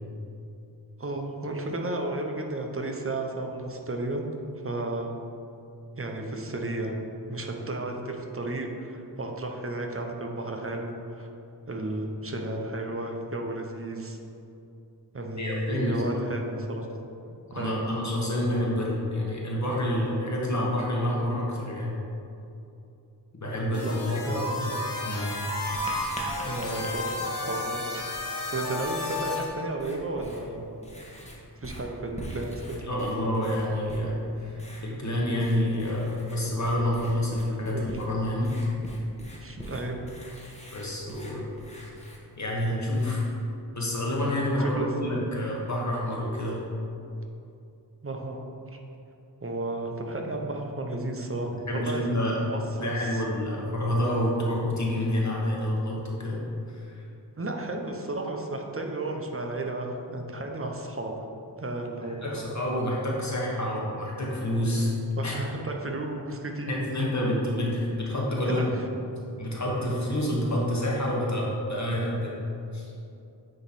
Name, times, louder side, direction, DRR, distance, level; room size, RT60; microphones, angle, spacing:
voice 1, 1.0-4.3 4.6-5.1 6.0-7.0 7.3-11.3 11.7-14.2 15.1-16.9 17.5-17.8 23.8-24.7 26.5-27.8 28.5-30.7 31.6-32.8 37.7-38.0 39.4-40.0 44.6-45.2 48.0-48.5 49.4-52.0 52.4-53.2 57.4-61.1 61.6-62.5 64.7-66.9 68.5-68.6, right 2 dB, 30° right, 2 dB, 0.7 m, -33 dB
voice 2, 15.4-16.2 17.5-21.9 23.3-24.7 25.0-25.3 32.8-38.5 40.7-41.4 41.7-41.8 42.4-43.2 43.7-46.6 51.7-52.5 52.8-56.4 56.7-57.0 62.0-64.9 65.2-65.4 66.7-68.8 69.4-72.4 72.7-72.9, left 1 dB, 40° left, -4 dB, 1.2 m, -28 dB
sound 1, 23.7-29.5, left 2 dB, 70° left, 1.3 m, -32 dB
Writing, 25.7-43.5, equal, 15° left, 1.1 m, -44 dB
8.7 x 3.1 x 4.2 m, 2.7 s
wide cardioid pair, 70°, 42 cm